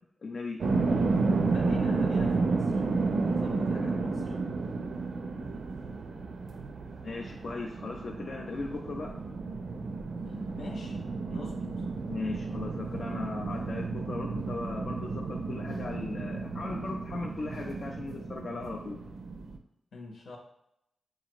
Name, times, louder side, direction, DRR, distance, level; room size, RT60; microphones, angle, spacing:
voice 1, 0.2-0.6 7.0-9.2 12.1-19.0, left 3 dB, 50° left, 0 dB, 0.4 m, -38 dB
sound 1, 0.6-19.6, right 3 dB, 70° right, 0.5 m, -32 dB
voice 2, 1.5-2.9 3.2-4.4 10.3-11.0 11.3-11.9 19.9-20.4, left 2 dB, 80° left, 0 dB, 1.0 m, -44 dB
7.1 x 2.5 x 2.9 m, 0.81 s
wide cardioid pair, 155°, 0 cm